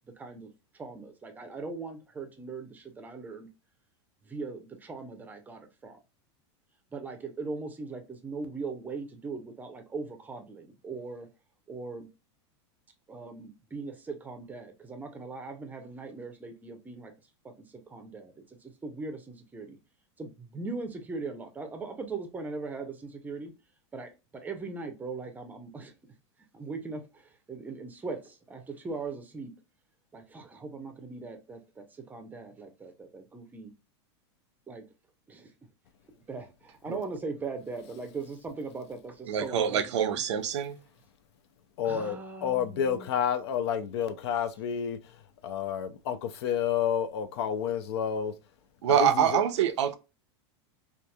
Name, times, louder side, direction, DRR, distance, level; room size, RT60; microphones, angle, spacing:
voice 1, 0.2-3.5 4.2-6.0 6.9-11.3 11.7-12.1 13.1-17.1 17.6-19.8 20.2-23.5 23.9-25.9 26.5-29.5 30.1-33.7 34.7-34.8 35.3-35.5 36.3-40.2 41.8-43.1, right 4 dB, 10° right, 0.5 m, -40 dB
voice 2, 39.3-40.8 48.8-50.0, right 9 dB, 85° right, 0.5 m, -25 dB
voice 3, 41.8-48.3 48.9-49.4, left 8 dB, 70° left, 0.5 m, -30 dB
2.8 x 2.4 x 2.2 m
supercardioid pair, 135°, 15 cm